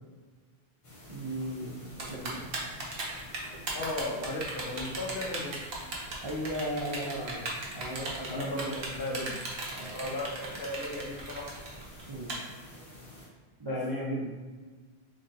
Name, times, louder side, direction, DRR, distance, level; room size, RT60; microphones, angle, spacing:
sound 1, 0.8-13.3, equal, 35° left, 0.8 m, -50 dB
voice 1, 1.1-2.4 6.2-7.4 7.7-8.7 9.7-10.0 12.1-12.3 13.6-13.8, equal, 35° right, -6 dB, 0.4 m, -36 dB
Typing, 2.0-12.3, right 2 dB, 75° right, 1.1 m, -37 dB
voice 2, 3.7-5.5 8.2-9.4 9.9-11.4 13.7-14.3, left 1 dB, 60° left, -3 dB, 1.0 m, -35 dB
3.8 x 3.6 x 2.7 m, 1.4 s
omnidirectional pair, 1.1 m